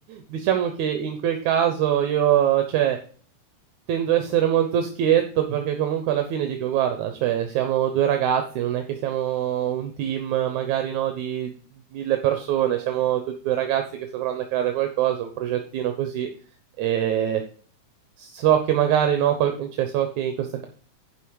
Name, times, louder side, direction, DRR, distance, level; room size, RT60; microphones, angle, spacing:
voice 1, 0.1-3.0 3.9-11.5 11.9-13.8 14.1-16.3 16.8-17.4 18.2-20.7, right 10 dB, 75° right, 6 dB, 2.3 m, -23 dB
11.0 x 5.1 x 4.8 m, 0.41 s
omnidirectional pair, 3.5 m